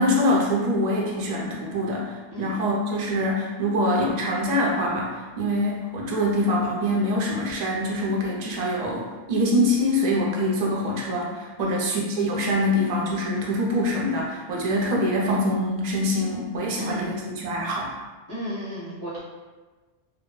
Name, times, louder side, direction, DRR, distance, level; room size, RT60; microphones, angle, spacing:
voice 1, 0.0-17.9, equal, 55° right, -3 dB, 0.5 m, -24 dB
voice 2, 16.8-17.1 18.3-19.2, equal, 20° right, -9 dB, 0.7 m, -34 dB
2.1 x 2.0 x 3.0 m, 1.3 s
omnidirectional pair, 1.2 m